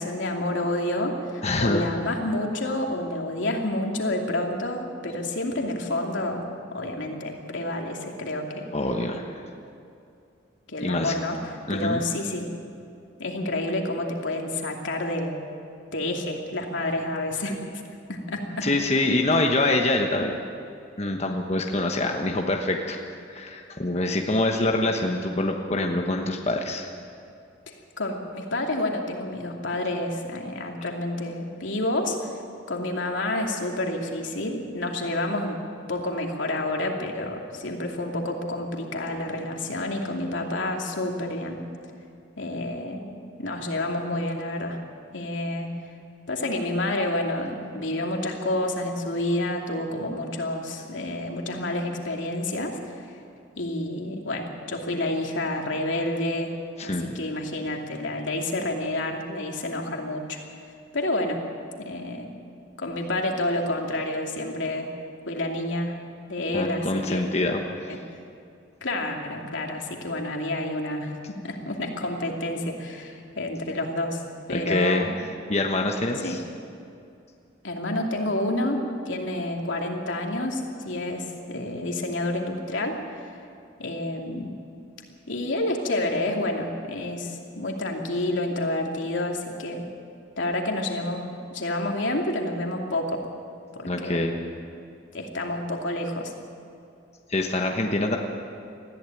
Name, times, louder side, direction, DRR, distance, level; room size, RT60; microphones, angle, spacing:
voice 1, 0.0-8.7 10.7-12.4 13.2-15.4 15.9-17.6 18.1-18.7 28.0-32.2 32.7-35.6 35.9-41.6 42.4-44.8 45.1-45.7 46.3-52.8 53.6-56.5 56.8-60.4 60.9-61.4 61.8-62.3 62.8-64.9 65.3-65.9 66.3-67.2 67.9-68.0 68.8-71.1 71.4-74.2 74.5-75.2 76.2-76.4 77.6-83.3 83.8-84.5 85.3-89.9 90.4-93.2 93.7-94.2 95.1-96.3, left 1 dB, 85° left, 1 dB, 2.7 m, -29 dB
voice 2, 1.4-1.8 8.7-9.2 10.8-11.1 11.7-12.0 18.6-20.4 21.0-23.0 23.3-26.9 56.8-57.1 66.5-67.6 74.5-75.1 75.5-76.4 93.8-94.4 97.3-98.2, left 2 dB, 35° left, 2 dB, 1.2 m, -25 dB
20.0 x 14.5 x 9.2 m, 2.5 s
head